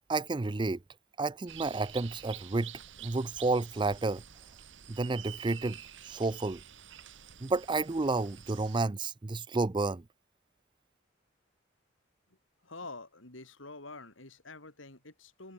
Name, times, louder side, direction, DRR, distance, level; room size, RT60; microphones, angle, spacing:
voice 1, 0.1-0.8 1.2-2.7 3.0-4.2 4.9-6.6 7.4-10.0, right 3 dB, 25° right, 0.5 m, -31 dB
sound 1, 1.5-8.8, right 10 dB, 70° right, 1.7 m, -48 dB
voice 2, 12.6-15.5, left 3 dB, 90° left, 4.8 m, -47 dB
head